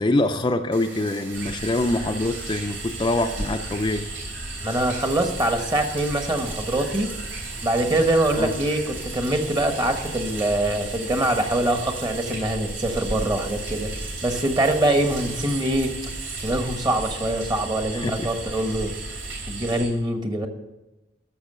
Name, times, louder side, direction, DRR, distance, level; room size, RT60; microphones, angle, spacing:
voice 1, 0.0-4.1 8.4-8.5 17.9-18.3, left 2 dB, 25° left, 5 dB, 0.5 m, -24 dB
Bathtub (filling or washing), 0.7-19.8, right 4 dB, 70° right, 3.1 m, -41 dB
sound 1, 1.3-19.9, right 2 dB, 85° right, 3.5 m, -35 dB
voice 2, 4.6-7.1 7.6-13.9 14.2-15.9 16.4-18.9 19.5-20.5, right 1 dB, 25° right, 6 dB, 1.2 m, -24 dB
13.0 x 6.9 x 6.7 m, 1.0 s
head